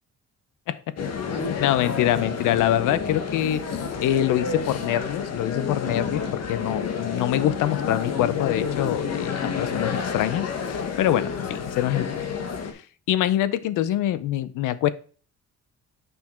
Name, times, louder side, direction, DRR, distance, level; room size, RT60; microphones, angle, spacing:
sound 1, 1.0-12.7, left 6 dB, 55° left, 1.5 m, -29 dB
voice 1, 1.5-3.6 4.0-12.2 13.1-14.9, left 12 dB, 85° left, 16 dB, 0.7 m, -25 dB
6.9 x 5.8 x 4.3 m, 0.40 s
cardioid pair, 90°, 30 cm